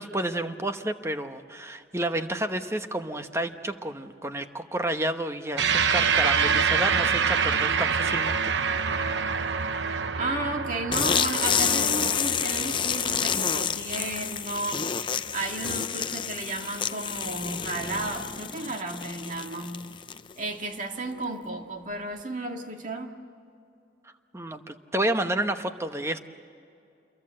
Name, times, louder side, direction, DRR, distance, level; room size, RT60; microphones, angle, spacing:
voice 1, 0.0-8.5 8.9-9.1 9.4-9.7 24.3-26.2, right 1 dB, 15° right, 8 dB, 1.0 m, -30 dB
sound 1, 5.6-14.3, right 6 dB, 80° right, 0.9 m, -26 dB
voice 2, 10.2-19.9 20.4-23.2, right 2 dB, 45° right, 3 dB, 2.1 m, -33 dB
sound 2, 10.9-20.4, left 7 dB, 25° left, 0.6 m, -29 dB
27.5 x 23.0 x 7.7 m, 2.5 s
head